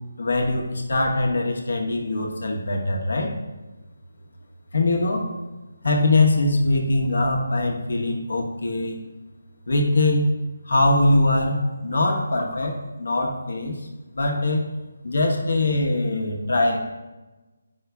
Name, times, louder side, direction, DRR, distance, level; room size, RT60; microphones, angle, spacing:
voice 1, 0.2-3.3 4.7-5.3 5.8-9.0 9.7-10.3 10.7-13.8 14.1-14.7 15.0-16.8, left 2 dB, 75° left, 1 dB, 1.0 m, -22 dB
8.1 x 5.5 x 2.3 m, 1.1 s
hypercardioid pair, 180°, 0 cm